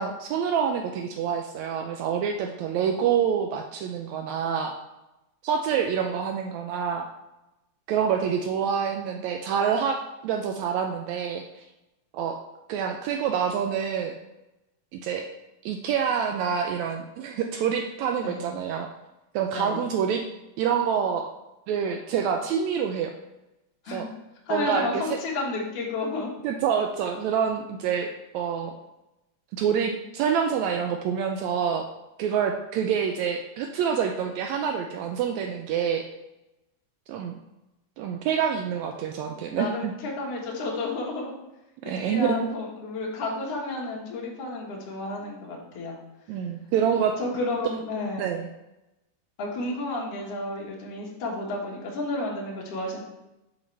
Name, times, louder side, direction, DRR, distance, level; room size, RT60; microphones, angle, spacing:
voice 1, 0.0-4.8 5.4-7.1 7.9-10.0 10.2-11.6 12.1-12.4 12.7-14.1 14.9-15.3 15.6-18.9 19.3-20.2 20.6-21.3 21.7-23.1 23.9-24.1 24.5-25.0 26.4-28.7 29.5-31.8 32.2-36.0 37.1-37.3 38.0-39.9 41.8-42.4 46.3-47.1 48.2-48.5, right 7 dB, 80° right, 4 dB, 1.7 m, -27 dB
voice 2, 18.2-18.5 19.5-19.8 23.8-24.1 24.5-26.3 39.4-41.4 41.8-45.9 47.2-48.3 49.4-53.0, left 2 dB, 55° left, -3 dB, 2.1 m, -31 dB
6.4 x 5.8 x 3.2 m, 0.96 s
omnidirectional pair, 3.5 m